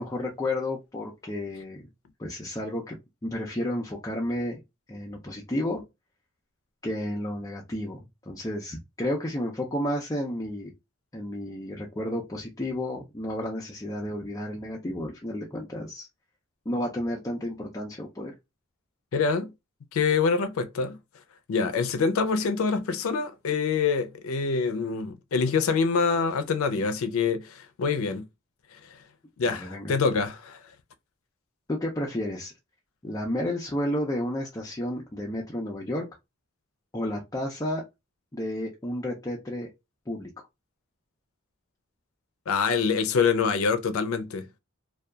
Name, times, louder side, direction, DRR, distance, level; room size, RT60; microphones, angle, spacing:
voice 1, 0.0-1.8 2.2-4.6 4.9-5.8 6.8-10.7 11.1-16.1 16.7-18.3 29.5-29.9 31.7-32.5 33.0-36.1 36.9-37.8 38.3-39.7 40.1-40.3, left 1 dB, 15° left, 0.4 m, -31 dB
voice 2, 19.1-19.5 19.9-21.0 21.5-28.2 29.4-30.6 42.5-44.5, left 5 dB, 85° left, 0.4 m, -25 dB
2.7 x 2.3 x 2.2 m
head